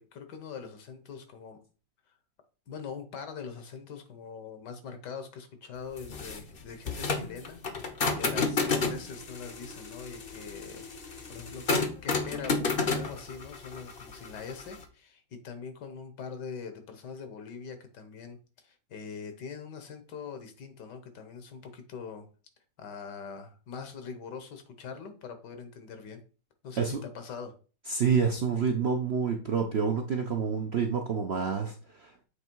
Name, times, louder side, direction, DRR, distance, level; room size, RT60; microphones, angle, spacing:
voice 1, 0.0-1.6 2.7-22.3 22.8-26.2 26.6-27.6, left 6 dB, 70° left, 8 dB, 1.7 m, -43 dB
sound 1, 6.0-14.8, left 4 dB, 40° left, 0.8 m, -31 dB
voice 2, 27.9-32.2, right 6 dB, 60° right, 3 dB, 0.7 m, -28 dB
7.9 x 3.3 x 4.6 m, 0.36 s
omnidirectional pair, 1.9 m